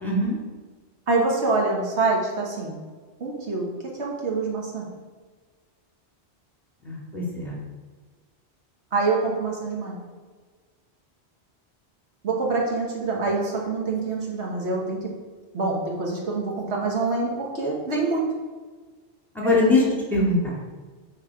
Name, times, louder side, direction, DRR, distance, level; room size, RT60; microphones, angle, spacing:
voice 1, 0.0-0.4 6.8-7.6 19.4-19.8 20.1-20.6, left 2 dB, ahead, -4 dB, 2.1 m, -22 dB
voice 2, 1.1-2.8 3.2-3.7 4.0-4.8 8.9-10.0 12.2-15.0 15.5-18.2 19.4-19.6, right 3 dB, 75° right, -2 dB, 1.7 m, -25 dB
9.5 x 4.1 x 4.8 m, 1.4 s
omnidirectional pair, 1.1 m